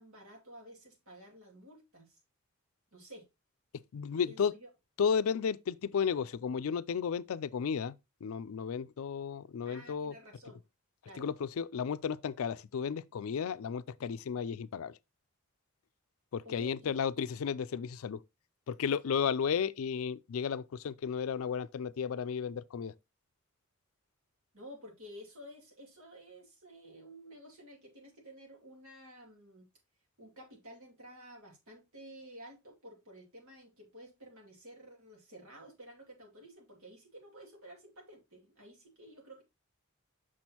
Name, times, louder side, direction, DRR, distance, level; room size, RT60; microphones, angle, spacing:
voice 1, 0.0-2.2 2.9-3.3 4.2-4.7 9.6-10.6 11.0-11.3 16.4-17.0 24.5-29.7 30.2-39.4, equal, 80° right, 2.5 m, -52 dB
voice 2, 3.9-4.5 5.0-7.9 8.2-10.1 11.2-14.9 16.3-18.2 18.7-22.9, left 6 dB, 75° left, 0.4 m, -33 dB
6.2 x 6.1 x 2.9 m
head